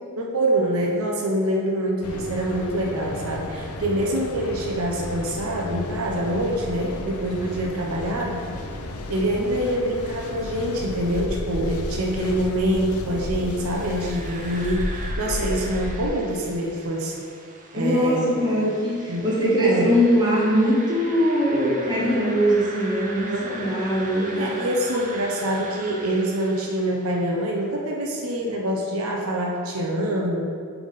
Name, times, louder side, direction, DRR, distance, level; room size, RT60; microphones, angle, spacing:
voice 1, 0.2-8.5 9.1-17.2 17.7-18.4 19.1-19.2 19.6-19.9 23.3-23.4 24.4-30.4, right 1 dB, 75° right, -1 dB, 0.7 m, -25 dB
Mechanical fan, 2.0-16.1, left 2 dB, 80° left, 0.5 m, -33 dB
sound 1, 13.4-27.4, right 2 dB, 35° right, 0.6 m, -40 dB
voice 2, 17.7-24.6, equal, 20° right, -7 dB, 1.3 m, -21 dB
7.3 x 3.5 x 4.0 m, 2.2 s
head